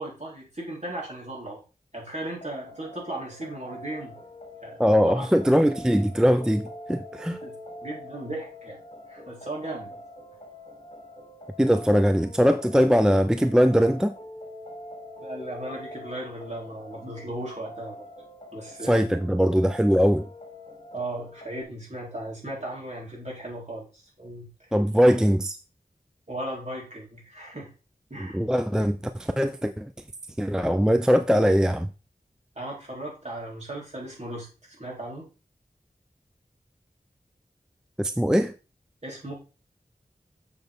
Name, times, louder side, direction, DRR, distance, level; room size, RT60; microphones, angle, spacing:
voice 1, 0.0-1.6 1.9-4.1 4.5-4.8 5.1-5.3 7.4-7.5 7.8-8.8 9.1-10.0 15.2-18.0 18.5-19.0 20.9-24.5 26.3-27.7 28.1-28.4 32.5-35.3 39.0-39.3, right 1 dB, 45° right, 4.1 m, -36 dB
sound 1, 2.3-21.6, left 1 dB, 35° left, 3.2 m, -44 dB
voice 2, 4.8-7.4 11.6-14.1 18.8-20.3 24.7-25.6 28.3-29.9 30.4-31.9 38.0-38.5, equal, 5° right, 0.4 m, -21 dB
7.0 x 6.3 x 3.6 m
wide cardioid pair, 50°, 16 cm